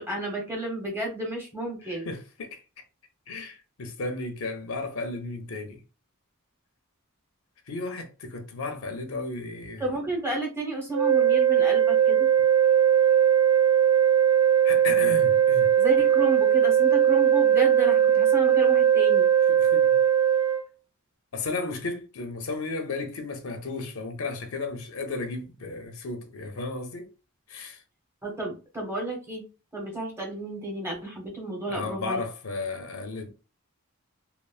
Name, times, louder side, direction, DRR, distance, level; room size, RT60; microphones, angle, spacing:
voice 1, 0.0-2.1 9.8-12.3 15.8-19.3 28.2-29.4 29.7-32.2, right 2 dB, 10° right, 0.8 m, -31 dB
voice 2, 1.9-2.6 3.3-5.8 7.7-9.9 14.6-15.7 19.6-19.9 21.3-27.1 27.5-27.8 31.7-33.3, left 3 dB, 65° left, 0.6 m, -34 dB
sound 1, 10.9-20.6, right 9 dB, 55° right, 1.0 m, -20 dB
3.1 x 2.0 x 2.4 m
head